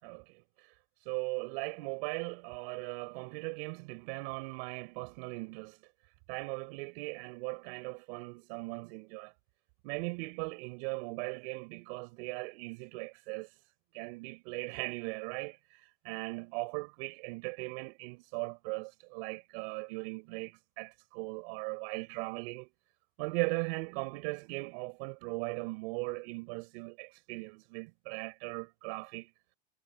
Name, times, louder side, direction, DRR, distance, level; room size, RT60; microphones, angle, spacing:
voice 1, 0.0-5.8 6.3-9.3 9.8-13.5 13.9-22.7 23.2-29.3, right 31 dB, 50° right, 6.2 m, -39 dB
supercardioid pair, 155°, 37 cm